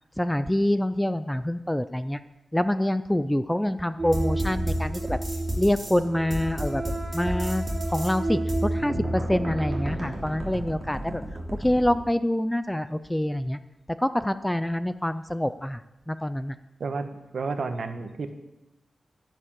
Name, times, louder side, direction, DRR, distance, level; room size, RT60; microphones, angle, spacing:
voice 1, 0.2-2.2 2.5-5.2 5.6-6.8 7.1-11.2 11.6-13.6 13.9-15.8 16.1-16.6, left 1 dB, 5° left, 12 dB, 0.4 m, -26 dB
sound 1, 4.0-12.0, right 1 dB, 20° right, 3.4 m, -30 dB
voice 2, 16.8-18.3, right 4 dB, 60° right, 7 dB, 1.3 m, -31 dB
11.0 x 11.0 x 7.5 m, 0.96 s
wide cardioid pair, 170°, 0 cm